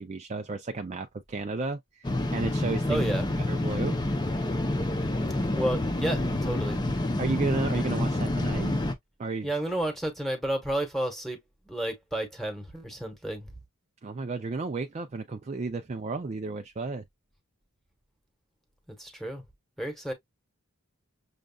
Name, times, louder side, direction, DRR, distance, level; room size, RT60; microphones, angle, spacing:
voice 1, 0.0-3.0 3.5-4.0 7.2-8.8 9.2-9.5 14.0-17.0, right 3 dB, 30° right, 0.4 m, -32 dB
sound 1, 2.0-8.9, left 1 dB, 20° left, 0.6 m, -28 dB
voice 2, 2.9-3.3 5.6-6.8 9.4-11.4 11.7-13.5 19.0-19.4 19.8-20.1, right 1 dB, ahead, 1.2 m, -31 dB
6.4 x 2.3 x 2.3 m
head